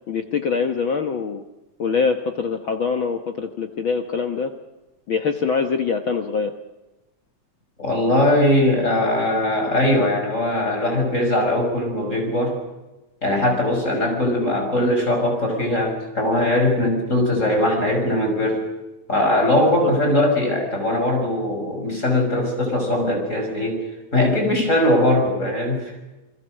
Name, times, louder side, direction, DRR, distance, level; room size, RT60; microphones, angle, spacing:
voice 1, 0.1-1.4 1.8-4.5 5.1-6.5 19.8-19.9, left 5 dB, 55° left, 5 dB, 1.7 m, -24 dB
voice 2, 7.8-12.6 13.2-18.7 19.1-23.8 24.1-25.8, left 1 dB, 25° left, 2 dB, 6.5 m, -20 dB
29.0 x 22.0 x 6.5 m, 1.0 s
omnidirectional pair, 3.3 m